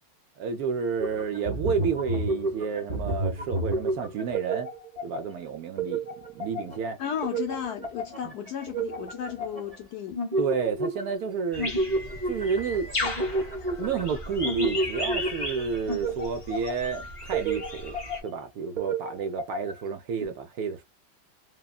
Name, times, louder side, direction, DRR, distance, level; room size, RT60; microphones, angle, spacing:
voice 1, 0.4-4.7 5.0-6.0 6.3-7.0 10.4-11.7 12.3-12.9 13.8-18.0 18.2-20.8, right 6 dB, 70° right, 0.8 m, -30 dB
sound 1, 1.0-5.3 5.8-9.8 10.1-11.3 11.6-16.9 17.3-18.4 18.8-19.8 20.2-20.3, right 2 dB, 35° right, 0.5 m, -31 dB
voice 2, 7.0-10.2, left 9 dB, 75° left, 0.9 m, -34 dB
sound 2, 11.5-18.2, left 2 dB, 50° left, 0.4 m, -35 dB
3.5 x 2.1 x 2.3 m
omnidirectional pair, 2.1 m